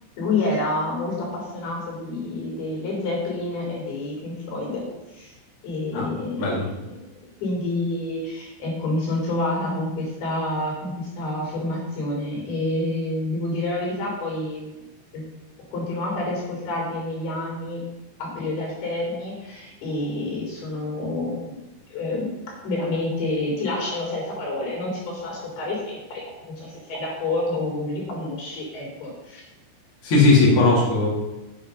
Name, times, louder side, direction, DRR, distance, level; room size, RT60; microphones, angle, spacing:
voice 1, 0.2-4.8 5.1-5.3 5.6-6.6 6.9-7.1 7.4-14.7 15.1-15.2 15.7-17.8 18.2-21.6 21.9-22.3 22.6-29.4, left 2 dB, 65° left, -2 dB, 5.1 m, -28 dB
voice 2, 30.0-31.1, left 3 dB, 35° left, -6 dB, 3.2 m, -17 dB
8.8 x 7.2 x 5.4 m, 1.0 s
omnidirectional pair, 5.0 m